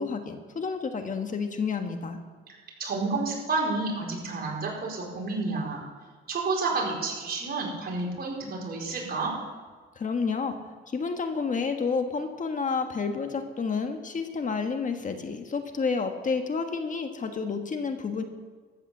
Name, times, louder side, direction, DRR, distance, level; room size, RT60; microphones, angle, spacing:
voice 1, 0.0-2.2 9.9-10.6 10.9-18.2, left 5 dB, 40° left, 6 dB, 1.5 m, -30 dB
voice 2, 2.5-5.8 6.3-9.3, right 3 dB, 50° right, -2 dB, 5.0 m, -30 dB
13.5 x 9.2 x 7.4 m, 1.5 s
cardioid pair, 90°, 20 cm